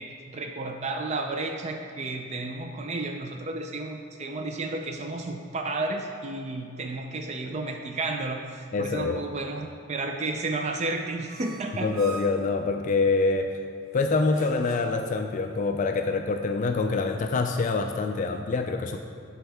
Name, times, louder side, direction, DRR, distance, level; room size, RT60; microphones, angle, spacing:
voice 1, 0.0-11.9, right 2 dB, 35° right, 4 dB, 0.4 m, -32 dB
voice 2, 8.7-9.2 11.8-13.6 13.9-19.0, left 3 dB, 40° left, 5 dB, 0.3 m, -25 dB
sound 1, 11.3-12.5 13.9-15.1, right 2 dB, 80° right, 1.1 m, -42 dB
11.5 x 4.5 x 3.4 m, 2.4 s
head